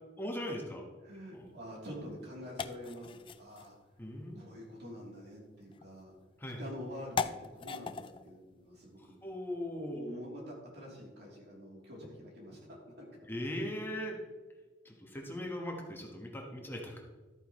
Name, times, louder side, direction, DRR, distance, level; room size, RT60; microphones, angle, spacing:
voice 1, 0.2-0.9 1.3-1.5 4.0-4.4 6.4-6.6 9.2-10.0 13.3-14.2 14.8-17.0, left 1 dB, 10° left, 0 dB, 1.3 m, -39 dB
voice 2, 1.0-3.7 4.4-6.1 6.6-9.2 9.9-13.1, equal, 65° right, -3 dB, 3.2 m, -46 dB
sound 1, 1.3-10.0, left 5 dB, 30° left, 0.4 m, -43 dB
13.0 x 9.2 x 3.1 m, 1.3 s
head